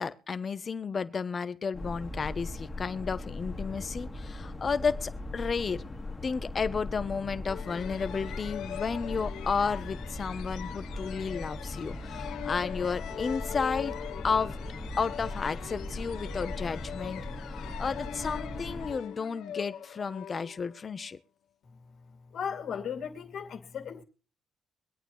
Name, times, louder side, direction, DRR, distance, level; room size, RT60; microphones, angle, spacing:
voice 1, 0.0-5.8 6.2-14.0 14.2-14.6 15.0-17.5 17.8-21.2, left 5 dB, 40° left, 0.9 m, -32 dB
sound 1, 1.7-18.9, left 2 dB, 20° left, 1.7 m, -39 dB
sound 2, 7.5-21.0, left 9 dB, 85° left, 0.8 m, -42 dB
voice 2, 22.3-24.0, left 7 dB, 65° left, 2.5 m, -36 dB
24.0 x 9.0 x 3.1 m
cardioid pair, 90°, 0 cm